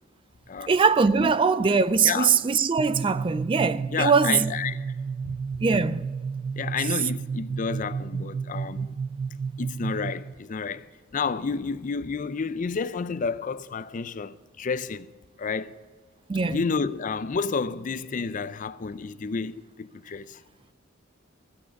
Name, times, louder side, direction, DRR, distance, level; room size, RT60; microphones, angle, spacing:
voice 1, 0.7-4.5 5.6-6.1 16.3-16.6, right 5 dB, 25° right, 0.3 m, -22 dB
sound 1, 2.8-10.3, right 5 dB, 85° right, 0.6 m, -32 dB
voice 2, 3.9-4.8 5.2-5.6 6.6-8.9 9.6-15.1 15.4-15.8 16.5-20.4, left 5 dB, 40° left, 0.4 m, -30 dB
15.0 x 8.7 x 5.2 m
head